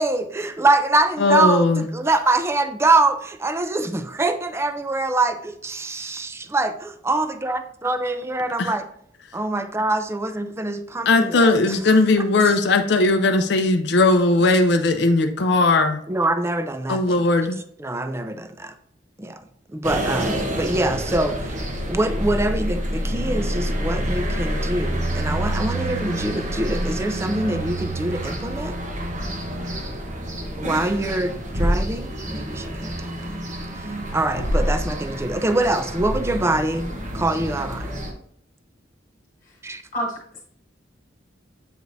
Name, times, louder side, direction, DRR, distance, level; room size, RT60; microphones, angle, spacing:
voice 1, 0.0-8.9 9.3-11.8 12.2-12.3 16.1-17.2 17.8-18.7 19.2-19.4 19.7-21.6 21.9-28.8 30.6-33.1 33.8-37.9 39.6-39.8, right 2 dB, 15° right, 9 dB, 0.4 m, -24 dB
voice 2, 1.2-1.9 8.6-8.7 11.1-16.0 16.9-17.6, left 2 dB, 60° left, 6 dB, 0.5 m, -18 dB
sound 1, 19.8-38.1, equal, 40° right, 1.0 m, -27 dB
voice 3, 39.9-40.4, equal, 45° left, -3 dB, 1.3 m, -29 dB
7.9 x 4.9 x 2.6 m, 0.67 s
head